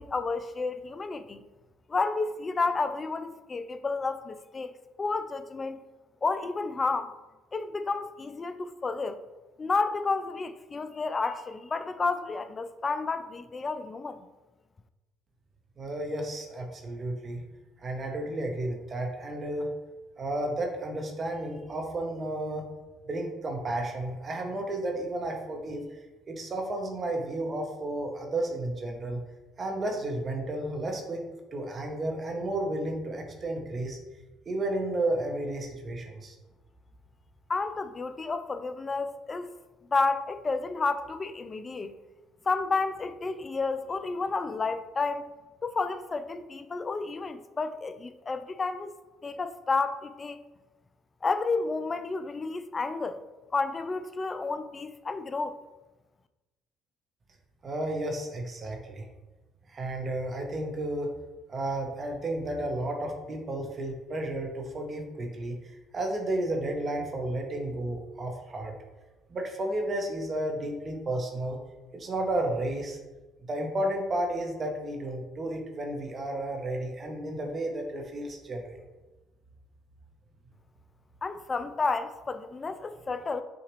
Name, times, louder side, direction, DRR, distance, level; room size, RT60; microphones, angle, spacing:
voice 1, 0.0-1.4 1.9-4.7 5.0-5.8 6.2-7.1 7.5-9.2 9.6-14.2 37.5-39.5 39.9-41.9 42.5-45.3 45.6-48.9 49.2-50.4 51.2-53.2 53.5-55.6 81.2-83.4, left 4 dB, 30° left, 0.3 m, -31 dB
voice 2, 15.8-17.4 17.8-19.7 20.2-22.6 23.1-26.0 26.3-29.2 29.6-34.0 34.5-36.3 57.6-59.1 59.7-61.1 61.5-68.7 69.3-71.6 71.9-73.0 73.4-78.8, right 1 dB, 40° right, 0.8 m, -32 dB
6.0 x 2.4 x 3.1 m
supercardioid pair, 80°, 0 cm